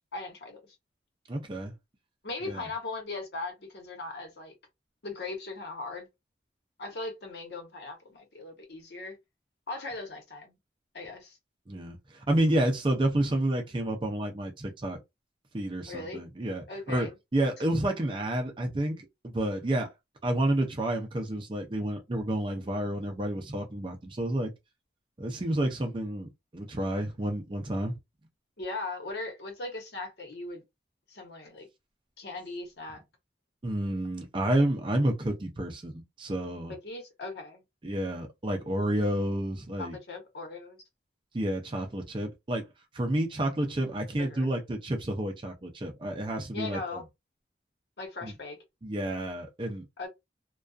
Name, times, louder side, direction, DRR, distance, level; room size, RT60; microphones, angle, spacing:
voice 1, 0.1-0.6 2.2-4.5 5.0-6.1 6.8-9.1 9.7-10.5 10.9-11.4 15.9-16.2 16.7-17.1 28.6-30.6 31.1-31.7 32.2-33.0 36.7-37.6 39.8-40.8 44.2-44.5 46.5-47.1 48.0-48.6 50.0-50.1, left 3 dB, 70° left, 1.0 m, -39 dB
voice 2, 1.3-1.7 2.4-2.7 11.7-15.0 15.5-19.9 20.2-24.5 25.2-27.9 33.6-36.7 37.8-40.0 41.3-42.7 42.9-47.0 48.2-48.3 48.8-50.1, right 1 dB, 30° right, 0.5 m, -30 dB
2.5 x 2.2 x 2.4 m
head